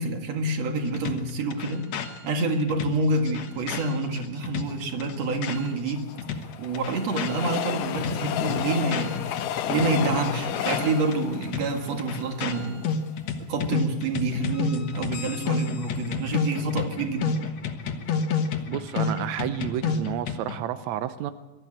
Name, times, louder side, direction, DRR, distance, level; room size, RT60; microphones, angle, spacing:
voice 1, 0.0-1.9 2.2-6.1 6.6-12.9 13.5-17.4, right 2 dB, 50° right, 4 dB, 2.7 m, -27 dB
sound 1, 0.9-5.9 6.2-9.4 9.7-20.6, left 5 dB, 60° left, 2.3 m, -31 dB
Train, 5.6-12.9 13.4-13.5 13.7-13.8, left 10 dB, 75° left, 2.4 m, -31 dB
voice 2, 18.7-21.3, right 11 dB, 80° right, 11 dB, 1.6 m, -30 dB
23.5 x 13.0 x 8.8 m, 1.1 s
omnidirectional pair, 4.1 m